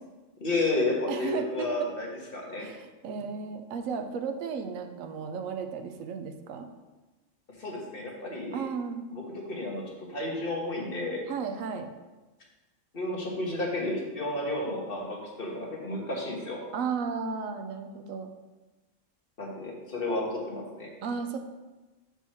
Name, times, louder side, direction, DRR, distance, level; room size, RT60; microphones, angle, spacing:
voice 1, 0.4-2.7 7.6-8.6 9.1-9.2 9.5-9.8 10.1-11.2 12.9-15.1 15.4-16.6 19.4-20.9, left 2 dB, 45° left, -2 dB, 1.5 m, -31 dB
voice 2, 1.1-1.9 2.6-6.7 8.5-9.0 11.3-11.9 16.7-18.3 21.0-21.4, right 6 dB, 90° right, 7 dB, 1.1 m, -34 dB
6.2 x 5.4 x 4.3 m, 1.2 s
omnidirectional pair, 1.3 m